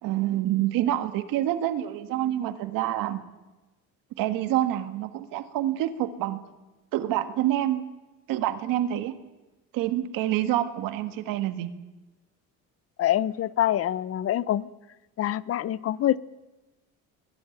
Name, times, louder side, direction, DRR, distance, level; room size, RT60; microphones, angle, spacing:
voice 1, 0.0-3.2 4.2-6.4 6.9-7.9 8.3-9.1 9.7-11.7, right 13 dB, 90° right, 11 dB, 1.7 m, -27 dB
voice 2, 13.0-14.7 15.2-16.2, left 12 dB, 45° left, 19 dB, 0.8 m, -25 dB
22.0 x 17.5 x 9.2 m, 1.1 s
cardioid pair, 150°, 33 cm